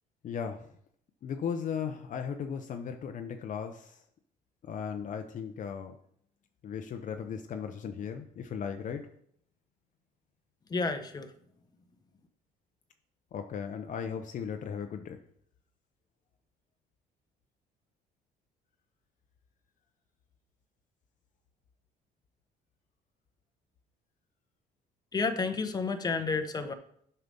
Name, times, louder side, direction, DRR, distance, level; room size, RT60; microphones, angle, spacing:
voice 1, 0.2-0.7 1.2-4.0 4.6-6.0 6.6-9.0 13.3-15.2, left 7 dB, 50° left, 6 dB, 0.7 m, -36 dB
voice 2, 10.7-11.3 25.1-26.7, left 4 dB, 25° left, 7 dB, 1.0 m, -30 dB
8.0 x 5.7 x 5.3 m, 0.67 s
cardioid pair, 110°, 17 cm